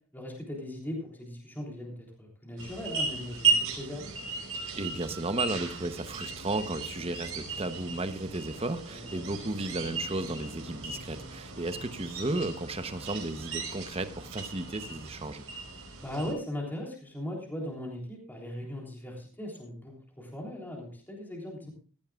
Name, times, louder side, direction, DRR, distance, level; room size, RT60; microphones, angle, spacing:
voice 1, 0.1-1.9 2.2-4.1 8.9-9.2 16.0-21.7, left 1 dB, 10° left, -2 dB, 3.4 m, -38 dB
sound 1, 2.6-16.3, right 4 dB, 65° right, 4.7 m, -35 dB
voice 2, 4.8-15.4, right 2 dB, 25° right, 10 dB, 0.9 m, -34 dB
16.0 x 14.0 x 2.4 m, 0.39 s
head